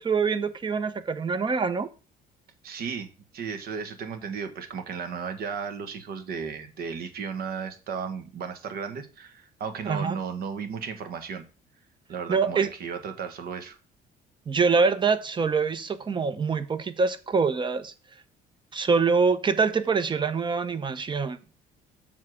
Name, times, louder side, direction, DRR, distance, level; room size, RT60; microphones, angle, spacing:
voice 1, 0.0-1.9 9.9-10.2 12.3-12.7 14.5-17.9 18.7-21.4, right 5 dB, 30° right, 0.8 m, -25 dB
voice 2, 2.6-11.4 12.1-13.8, right 6 dB, 65° right, 1.3 m, -35 dB
7.3 x 3.7 x 6.1 m
cardioid pair, 110°, 17 cm